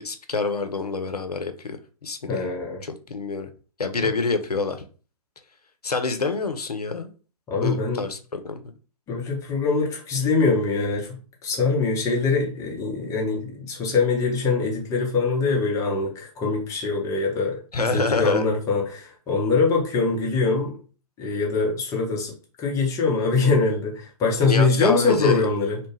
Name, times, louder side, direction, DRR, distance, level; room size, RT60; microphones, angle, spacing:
voice 1, 0.0-1.8 2.0-2.4 2.8-3.5 3.8-4.8 5.8-7.1 7.6-8.6 17.7-18.4 24.4-25.5, left 4 dB, 85° left, 0.5 m, -26 dB
voice 2, 2.3-2.8 4.0-4.1 7.5-8.0 9.1-20.7 21.2-22.3 22.6-25.8, left 4 dB, 15° left, 0.7 m, -23 dB
2.8 x 2.1 x 3.1 m
figure-of-eight pair, 120°, 19 cm